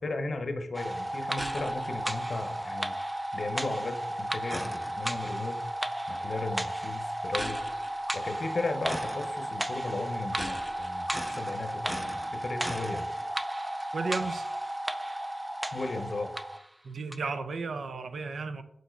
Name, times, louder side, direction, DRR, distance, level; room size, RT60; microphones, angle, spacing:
voice 1, 0.0-5.6 6.1-7.6 8.1-13.1 15.7-16.3, left 3 dB, 55° left, 6 dB, 0.7 m, -36 dB
sound 1, 0.7-16.7 17.1-17.2, right 1 dB, 10° right, 0.4 m, -34 dB
voice 2, 13.9-14.5 16.8-18.6, right 4 dB, 75° right, 10 dB, 0.5 m, -34 dB
4.7 x 4.6 x 4.4 m, 0.79 s
wide cardioid pair, 80°, 0 cm